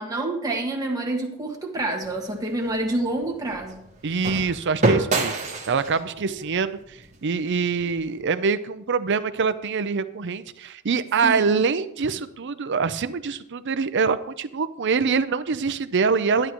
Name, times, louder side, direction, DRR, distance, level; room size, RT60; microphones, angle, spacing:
voice 1, 0.0-3.8 11.2-11.4, right 2 dB, 15° right, 0 dB, 1.6 m, -27 dB
sound 1, 2.0-8.2, right 2 dB, 30° right, 1.4 m, -29 dB
voice 2, 4.0-5.3 5.7-6.8 7.2-16.5, right 5 dB, 50° right, 12 dB, 0.5 m, -24 dB
11.5 x 11.0 x 3.0 m, 0.78 s
head